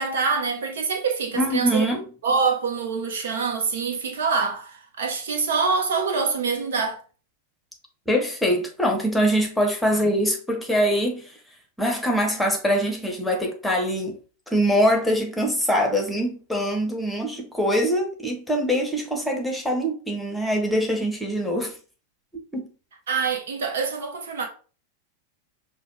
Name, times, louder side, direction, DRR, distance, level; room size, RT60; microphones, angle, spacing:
voice 1, 0.0-1.9 2.2-7.0 23.1-24.4, right 5 dB, 60° right, 0.8 m, -25 dB
voice 2, 1.3-2.1 8.1-11.3 11.8-14.2 14.5-21.8 22.5-22.7, equal, 5° left, 1.0 m, -23 dB
6.1 x 2.2 x 3.0 m
figure-of-eight pair, 90°, 0 cm